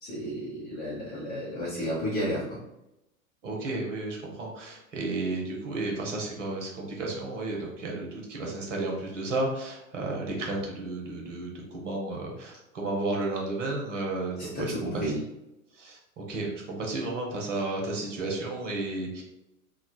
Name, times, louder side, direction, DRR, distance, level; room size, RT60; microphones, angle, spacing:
voice 1, 0.0-2.6 14.4-15.1, equal, 20° left, -9 dB, 0.8 m, -32 dB
voice 2, 3.4-14.7 15.8-19.2, right 2 dB, 60° right, -1 dB, 1.0 m, -32 dB
3.6 x 2.1 x 2.3 m, 0.89 s
figure-of-eight pair, 90°, 41 cm